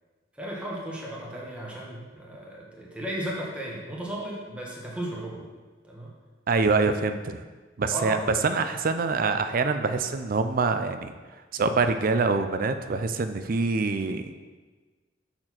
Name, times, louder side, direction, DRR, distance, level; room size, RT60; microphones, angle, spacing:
voice 1, 0.3-5.5 5.8-6.1 7.9-8.6, right 1 dB, 5° right, -4 dB, 1.2 m, -35 dB
voice 2, 6.5-7.4 7.8-8.2 8.4-11.1 11.5-14.2, right 4 dB, 50° right, 9 dB, 0.5 m, -25 dB
6.5 x 4.4 x 5.9 m, 1.3 s
head